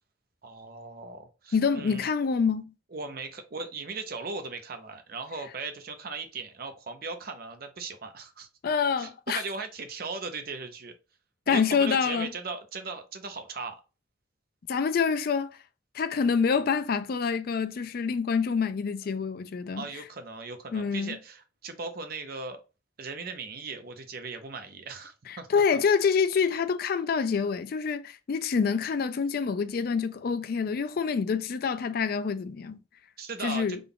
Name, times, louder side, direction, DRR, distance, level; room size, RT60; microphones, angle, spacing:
voice 1, 0.4-2.1 2.9-8.5 9.0-10.9 11.5-13.8 19.8-22.6 23.0-25.5 33.2-33.8, right 4 dB, 55° right, 0.7 m, -38 dB
voice 2, 1.5-2.7 8.6-9.4 11.5-12.3 14.7-15.6 15.9-19.9 20.7-21.2 25.3-32.8 33.4-33.8, left 6 dB, 55° left, 0.4 m, -26 dB
3.7 x 2.3 x 3.6 m
head